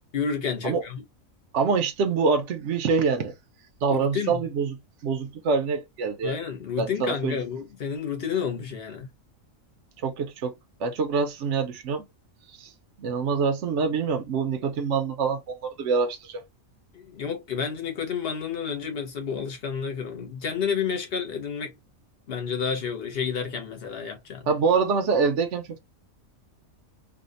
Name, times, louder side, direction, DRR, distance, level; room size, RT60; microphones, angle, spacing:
voice 1, 0.1-1.0 3.9-4.4 6.2-9.1 16.9-21.8 22.3-24.5, left 6 dB, 50° left, 1.1 m, -30 dB
voice 2, 1.5-3.3 3.8-4.8 5.0-6.4 6.8-7.4 10.0-10.5 10.8-12.1 12.6-12.7 13.0-16.4 24.5-25.8, right 5 dB, 65° right, 1.0 m, -25 dB
3.5 x 2.4 x 2.4 m
omnidirectional pair, 1.4 m